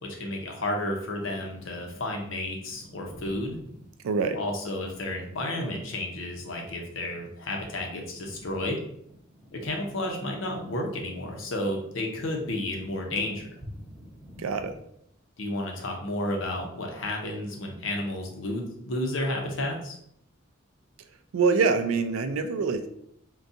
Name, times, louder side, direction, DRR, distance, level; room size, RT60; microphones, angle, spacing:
voice 1, 0.0-3.6 4.3-8.8 9.5-13.5 15.4-20.0, left 1 dB, 65° left, 1 dB, 0.7 m, -32 dB
sound 1, 1.1-14.8, equal, 5° left, 0.9 m, -50 dB
voice 2, 4.0-4.4 14.4-14.7 21.3-22.9, right 4 dB, 85° right, 9 dB, 0.4 m, -25 dB
3.7 x 2.3 x 2.6 m, 0.71 s
head